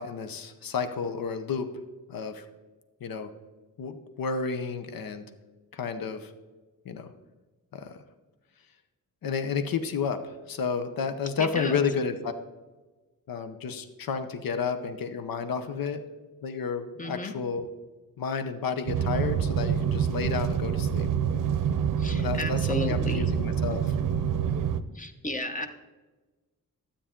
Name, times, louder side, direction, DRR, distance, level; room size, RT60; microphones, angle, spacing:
voice 1, 0.0-1.7 2.1-2.4 3.0-3.3 3.8-5.2 5.7-6.3 6.9-7.1 7.7-8.0 9.2-12.3 13.3-16.0 16.4-17.7 18.2-21.1 22.2-24.0, left 5 dB, 80° left, 9 dB, 0.9 m, -31 dB
voice 2, 11.4-11.8 17.0-17.3 22.0-23.2 24.9-25.7, left 1 dB, 25° left, 6 dB, 0.9 m, -33 dB
sound 1, 18.9-24.8, right 8 dB, 65° right, 0.6 m, -27 dB
12.5 x 8.6 x 3.7 m, 1.2 s
wide cardioid pair, 115°, 34 cm